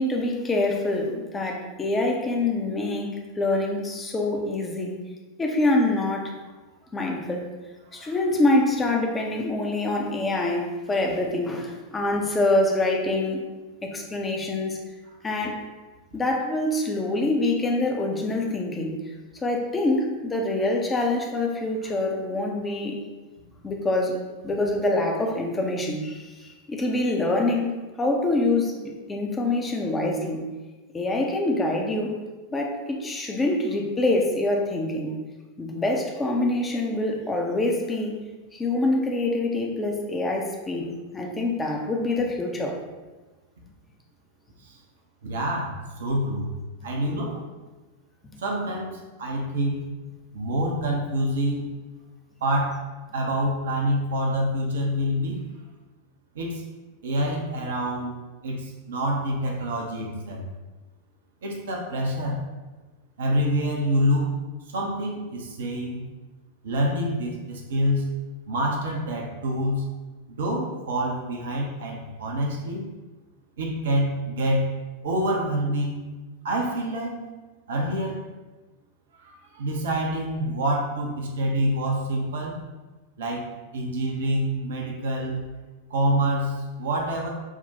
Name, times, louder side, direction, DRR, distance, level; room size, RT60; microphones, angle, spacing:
voice 1, 0.0-5.0 5.4-6.3 6.9-7.5 7.9-13.4 13.8-14.8 15.2-15.6 16.1-19.0 19.4-23.0 23.6-30.4 30.9-32.2 32.5-35.2 35.6-38.2 38.5-40.9 41.1-42.8, left 2 dB, 15° left, 1 dB, 0.6 m, -25 dB
voice 2, 45.2-46.5 46.8-47.4 48.4-49.9 50.3-51.7 52.4-52.8 53.1-55.5 56.3-56.6 57.0-58.2 58.4-60.4 61.4-62.4 63.2-64.3 64.7-66.1 66.6-68.2 68.5-69.9 70.3-72.9 73.6-74.7 75.0-76.0 76.4-77.2 77.7-78.2 79.1-82.6 83.2-85.4 85.9-87.3, equal, 60° right, 0 dB, 0.7 m, -26 dB
5.8 x 2.1 x 2.8 m, 1.2 s
figure-of-eight pair, 90°, 0 cm